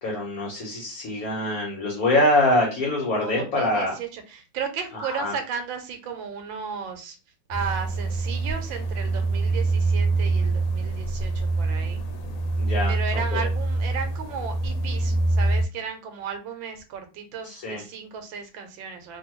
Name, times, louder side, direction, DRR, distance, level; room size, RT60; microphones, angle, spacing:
voice 1, 0.0-3.9 4.9-5.3 12.6-12.9 13.3-13.4 17.4-17.8, left 1 dB, 55° left, -2 dB, 1.2 m, -24 dB
voice 2, 3.2-7.2 7.5-12.0 12.9-19.2, right 6 dB, 85° right, 6 dB, 1.4 m, -34 dB
sound 1, 7.5-15.7, right 2 dB, 85° left, 1.4 m, -25 dB
3.0 x 2.6 x 2.9 m, 0.31 s
omnidirectional pair, 2.1 m